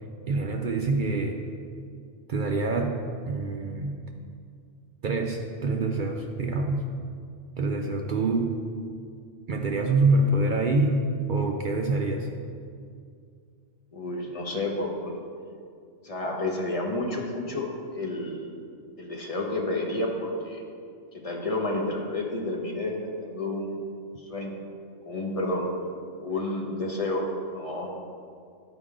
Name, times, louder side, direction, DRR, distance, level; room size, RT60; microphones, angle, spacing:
voice 1, 0.3-1.4 2.3-4.0 5.0-6.8 7.6-8.6 9.5-12.3, right 2 dB, 60° right, 2 dB, 0.5 m, -26 dB
voice 2, 13.9-15.1 16.0-18.5 19.0-20.6 21.2-22.9 23.2-23.9 24.2-24.6 25.1-25.7 26.2-27.2 27.5-27.9, left 2 dB, 30° left, -1 dB, 1.0 m, -30 dB
11.5 x 5.0 x 3.6 m, 2.3 s
omnidirectional pair, 1.2 m